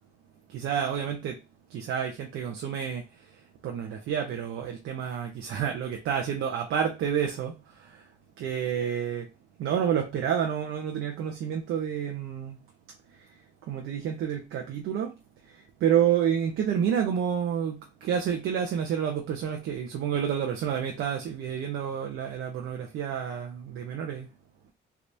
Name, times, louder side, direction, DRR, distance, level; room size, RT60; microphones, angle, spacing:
voice 1, 0.5-1.4 1.7-8.0 8.4-9.3 9.6-12.6 13.2-15.1 15.4-24.3, right 8 dB, 80° right, 0.7 m, -29 dB
3.4 x 2.9 x 2.6 m
cardioid pair, 90°, 20 cm